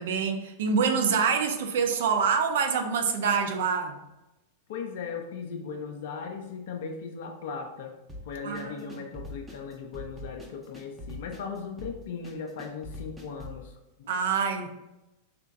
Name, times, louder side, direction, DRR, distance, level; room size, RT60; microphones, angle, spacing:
voice 1, 0.0-4.0 8.4-8.9 14.1-14.7, right 6 dB, 60° right, 5 dB, 0.4 m, -26 dB
voice 2, 4.7-7.9 8.2-13.7 14.0-14.1, left 5 dB, 55° left, 3 dB, 0.4 m, -38 dB
sound 1, 8.1-13.6, left 2 dB, 10° right, 0.6 m, -43 dB
3.3 x 2.9 x 2.5 m, 0.97 s
figure-of-eight pair, 90°, 0 cm